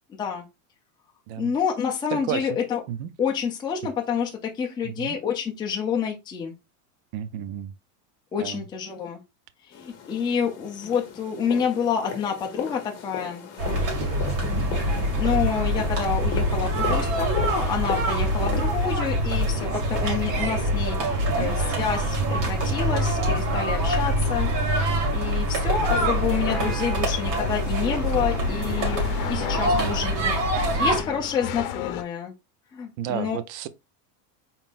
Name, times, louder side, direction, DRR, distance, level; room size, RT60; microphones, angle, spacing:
voice 1, 1.4-2.8 3.2-6.5 8.3-9.2 9.7-13.4 14.7-21.0 21.3-24.5 25.1-30.3 30.8-32.3 32.7-33.4, left 7 dB, 10° left, 0.5 m, -28 dB
voice 2, 2.1-2.6 2.9-3.1 4.8-5.2 7.1-7.7 8.4-8.7 14.5-14.7 21.3-21.6 29.7-30.0 33.0-33.7, right 10 dB, 60° right, 0.6 m, -32 dB
sound 1, 9.7-18.9, left 7 dB, 30° left, 1.1 m, -37 dB
sound 2, 13.6-31.0, right 1 dB, 85° right, 2.5 m, -25 dB
sound 3, 25.9-32.0, left 10 dB, 60° left, 0.8 m, -35 dB
4.1 x 3.7 x 2.5 m
supercardioid pair, 155°, 47 cm